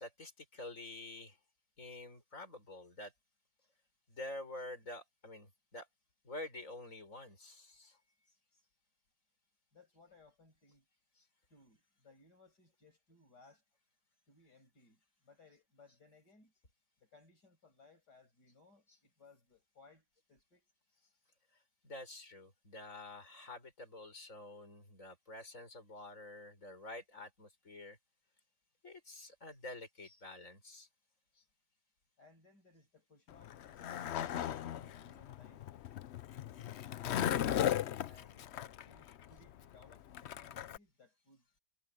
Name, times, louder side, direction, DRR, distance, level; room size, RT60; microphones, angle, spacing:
voice 1, 0.0-1.4 1.8-3.1 4.1-5.9 6.2-8.0 11.2-11.3 21.5-28.0 28.8-30.9 31.4-31.5, left 2 dB, 45° left, 7.0 m, -48 dB
voice 2, 9.7-10.8 11.5-13.6 14.3-16.5 17.0-20.7 32.2-35.7 36.3-41.4, left 3 dB, 65° left, 6.7 m, -64 dB
Skateboard, 33.3-40.8, left 10 dB, 85° left, 0.5 m, -37 dB
omnidirectional pair, 1.9 m